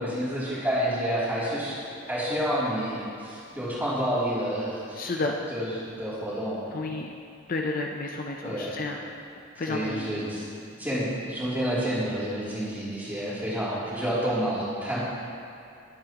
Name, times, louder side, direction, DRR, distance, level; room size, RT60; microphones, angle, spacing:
voice 1, 0.0-1.8 2.1-5.0 5.5-6.9 8.4-8.8 9.6-15.0, equal, 10° right, -10 dB, 3.0 m, -29 dB
voice 2, 5.0-5.3 6.7-7.1 7.5-9.0 9.6-10.1, left 3 dB, 45° left, 1 dB, 0.6 m, -31 dB
19.5 x 8.4 x 3.0 m, 2.5 s
head